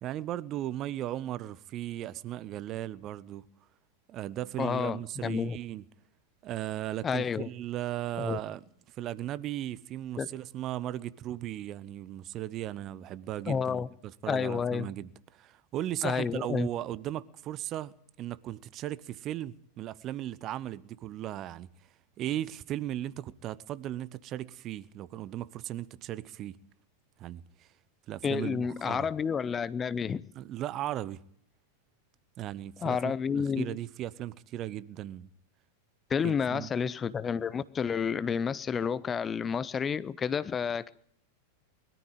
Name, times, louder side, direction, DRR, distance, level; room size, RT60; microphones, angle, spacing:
voice 1, 0.0-3.4 4.1-5.8 6.4-8.6 9.0-21.7 22.2-26.6 27.2-27.7 28.1-29.1 30.3-31.2 32.4-35.3 36.2-36.7, right 13 dB, 35° right, 0.9 m, -37 dB
voice 2, 4.6-5.6 7.0-7.5 8.2-8.4 10.2-10.3 13.5-13.9 14.3-14.9 16.0-16.7 28.2-30.2 32.8-33.8 36.1-40.9, left 6 dB, 20° left, 0.7 m, -30 dB
22.0 x 13.5 x 9.2 m
figure-of-eight pair, 90°, 0 cm